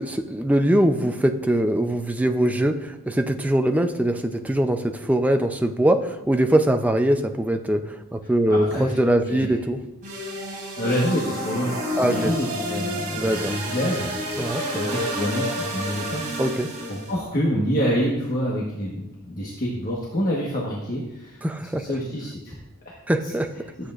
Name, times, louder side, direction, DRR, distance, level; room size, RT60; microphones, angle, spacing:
voice 1, 0.0-9.8 12.0-12.3 13.1-13.5 14.4-14.6 16.4-16.7 21.4-21.8 23.1-23.5, right 1 dB, 5° right, 6 dB, 0.5 m, -22 dB
voice 2, 8.5-8.9 9.3-9.6 10.8-16.2 16.9-21.4 21.7-22.6 22.8-22.9, equal, 40° left, -4 dB, 1.3 m, -27 dB
sound 1, 10.0-17.1, equal, 35° right, 3.2 m, -30 dB
13.0 x 8.2 x 2.5 m, 0.97 s
head